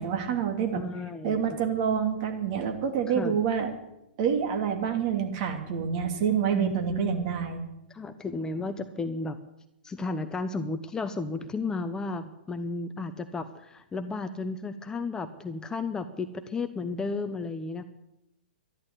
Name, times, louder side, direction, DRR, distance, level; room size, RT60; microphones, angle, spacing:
voice 1, 0.0-0.8 1.2-3.7 4.2-7.6, right 7 dB, 45° right, 5 dB, 2.9 m, -27 dB
voice 2, 0.7-1.4 3.2-3.4 6.5-7.3 7.9-9.4 9.8-17.8, left 3 dB, 10° left, 9 dB, 0.8 m, -33 dB
13.0 x 11.5 x 8.5 m, 0.89 s
figure-of-eight pair, 115°, 6 cm